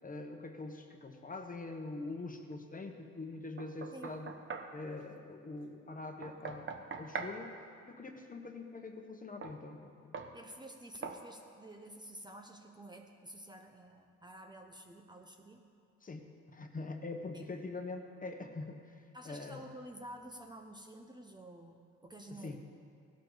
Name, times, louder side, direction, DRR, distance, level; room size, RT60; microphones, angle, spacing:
voice 1, 0.0-4.3 4.7-7.5 7.8-10.3 16.0-19.6 22.3-22.6, left 3 dB, 25° left, 4 dB, 1.3 m, -44 dB
Knock, 3.6-4.7 6.2-7.4 9.4-9.6 10.1-10.4 11.0-11.2, right 5 dB, 40° right, 1.1 m, -42 dB
voice 2, 10.3-15.6 17.3-17.5 19.1-22.6, right 1 dB, 15° right, 3 dB, 1.0 m, -50 dB
17.0 x 12.0 x 4.1 m, 2.3 s
cardioid pair, 90°, 30 cm